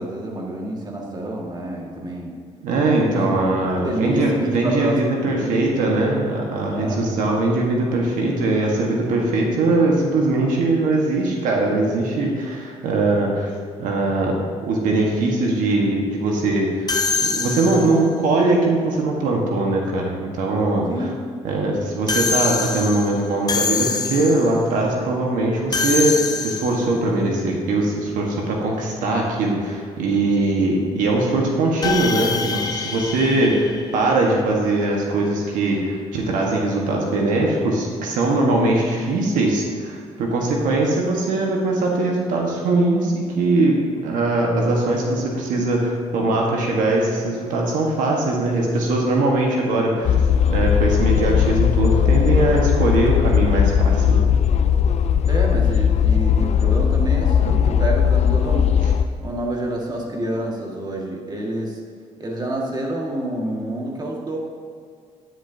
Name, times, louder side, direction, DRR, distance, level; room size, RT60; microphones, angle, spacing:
voice 1, 0.0-2.3 3.0-3.3 3.8-5.6 6.7-7.0 20.9-21.1 55.3-57.4 57.7-58.7 59.2-61.8 62.2-64.4, right 1 dB, 30° right, -1 dB, 1.9 m, -28 dB
voice 2, 2.6-13.5 13.8-14.4 14.6-16.9 17.2-21.1 21.4-50.2 50.5-54.2, right 2 dB, 90° right, -1 dB, 1.5 m, -21 dB
sound 1, 16.9-18.1 22.1-24.6 25.7-27.0 31.8-34.4, left 4 dB, 30° left, 0.8 m, -25 dB
sound 2, 50.0-59.0, left 8 dB, 55° left, 0.5 m, -18 dB
10.0 x 9.9 x 2.8 m, 2.2 s
cardioid pair, 90°, 13 cm